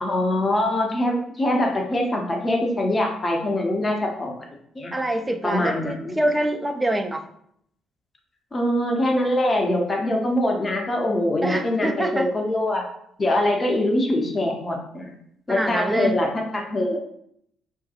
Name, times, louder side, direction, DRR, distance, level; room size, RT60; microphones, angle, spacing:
voice 1, 0.0-4.5 4.8-4.9 5.4-6.2 8.5-12.9 13.2-15.2 15.5-17.0, left 1 dB, 30° left, 1 dB, 0.6 m, -23 dB
voice 2, 4.9-7.2 11.4-12.3 15.5-16.2, right 1 dB, 15° right, 6 dB, 0.4 m, -25 dB
2.7 x 2.2 x 2.4 m, 0.71 s
figure-of-eight pair, 45°, 0 cm